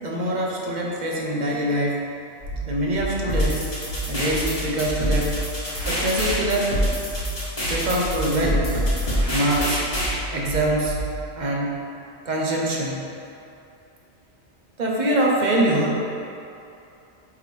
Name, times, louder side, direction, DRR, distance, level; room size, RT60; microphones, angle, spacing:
voice 1, 0.0-2.0 2.6-3.7 4.1-5.4 5.9-6.8 7.7-8.7 9.3-9.8 10.3-11.0 11.4-11.8 12.3-13.0 14.8-16.0, right 1 dB, 45° right, -2 dB, 0.9 m, -24 dB
sound 1, 2.4-11.4, right 2 dB, 65° left, 1.8 m, -31 dB
sound 2, 3.3-10.1, equal, 30° left, 1.5 m, -26 dB
8.2 x 3.5 x 3.3 m, 2.8 s
omnidirectional pair, 1.2 m